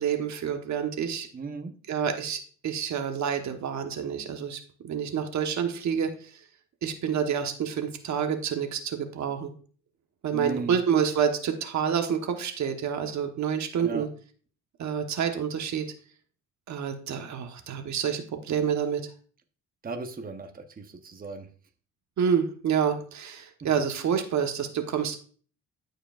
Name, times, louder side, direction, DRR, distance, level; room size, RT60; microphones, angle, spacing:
voice 1, 0.0-1.3 1.9-6.3 6.8-9.5 10.2-14.1 14.8-15.9 16.7-19.1 22.2-25.2, right 7 dB, 65° right, 6 dB, 1.2 m, -28 dB
voice 2, 1.3-1.7 10.3-10.8 13.8-14.0 19.8-21.5, right 4 dB, 30° right, 5 dB, 1.0 m, -36 dB
13.5 x 4.9 x 2.5 m, 0.43 s
cardioid pair, 90°, 30 cm